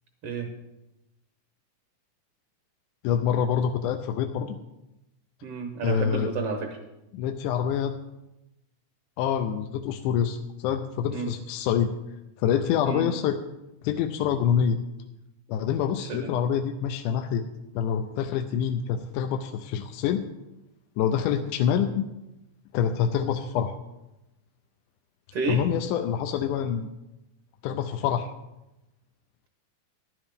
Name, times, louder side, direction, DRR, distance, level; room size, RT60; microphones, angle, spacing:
voice 1, 3.0-4.6 5.8-6.3 7.1-7.9 9.2-11.9 12.4-13.4 13.8-14.8 15.5-17.5 17.8-20.2 21.0-22.0 22.7-23.8 25.5-26.9 27.6-28.3, left 8 dB, 85° left, 6 dB, 2.1 m, -26 dB
voice 2, 5.4-6.8 11.1-11.3 12.9-13.0 16.1-16.3 25.3-25.6, right 4 dB, 60° right, 4 dB, 1.8 m, -30 dB
15.0 x 11.0 x 3.6 m, 0.95 s
omnidirectional pair, 3.6 m